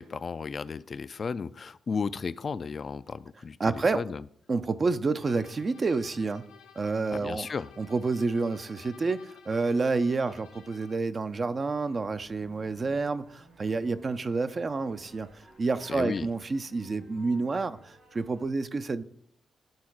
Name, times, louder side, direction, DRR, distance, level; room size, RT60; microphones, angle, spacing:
voice 1, 0.0-3.6 3.9-4.2 7.1-7.7 15.9-16.3, left 5 dB, 50° left, 0.4 m, -34 dB
voice 2, 3.6-4.0 4.5-6.5 6.8-7.5 7.8-19.0, right 3 dB, 45° right, 0.5 m, -29 dB
sound 1, 5.2-11.1, left 8 dB, 85° left, 0.9 m, -53 dB
sound 2, 11.9-18.5, right 2 dB, 80° right, 2.2 m, -56 dB
10.5 x 3.8 x 6.1 m
hypercardioid pair, 40°, 0 cm